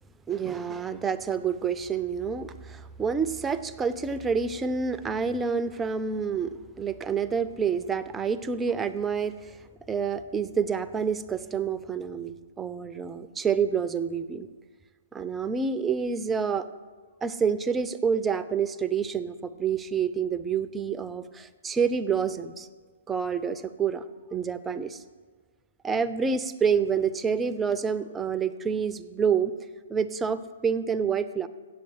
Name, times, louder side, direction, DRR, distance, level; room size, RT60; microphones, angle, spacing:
voice 1, 0.3-9.6 9.9-14.5 15.1-16.7 17.2-22.7 23.1-24.0 24.3-25.0 25.8-29.5 29.9-31.5, right 6 dB, 15° right, 12 dB, 0.5 m, -28 dB
8.4 x 7.5 x 7.8 m, 1.5 s
figure-of-eight pair, 120°, 0 cm